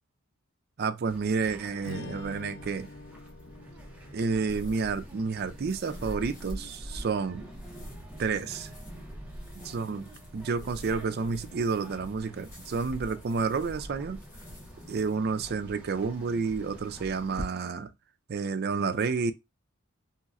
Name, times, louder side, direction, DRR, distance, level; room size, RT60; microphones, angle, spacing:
voice 1, 0.8-2.9 4.1-7.5 8.2-8.7 9.6-14.2 14.9-17.9 18.3-19.3, right 5 dB, 50° right, 0.4 m, -30 dB
sound 1, 1.0-17.5, equal, 5° right, 0.9 m, -47 dB
Strum, 1.8-6.2, left 4 dB, 60° left, 0.4 m, -47 dB
sound 2, 4.5-15.1, equal, 35° left, 1.5 m, -45 dB
3.1 x 2.9 x 2.4 m
head